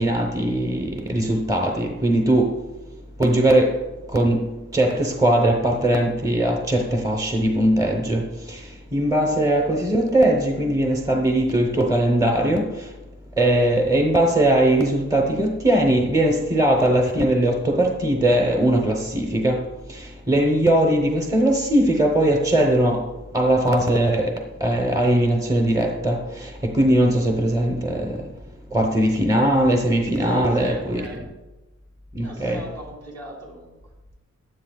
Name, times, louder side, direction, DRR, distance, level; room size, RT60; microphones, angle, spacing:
voice 1, 0.0-2.5 3.2-3.8 4.1-4.5 4.7-8.6 8.9-12.7 13.4-19.6 20.3-23.0 23.3-24.3 24.6-28.1 28.7-31.1 32.2-32.6, right 1 dB, 10° right, 0.9 m, -20 dB
voice 2, 30.2-31.3 32.2-33.8, right 1 dB, 60° right, 3.4 m, -38 dB
15.0 x 10.5 x 2.3 m
wide cardioid pair, 145°, 30 cm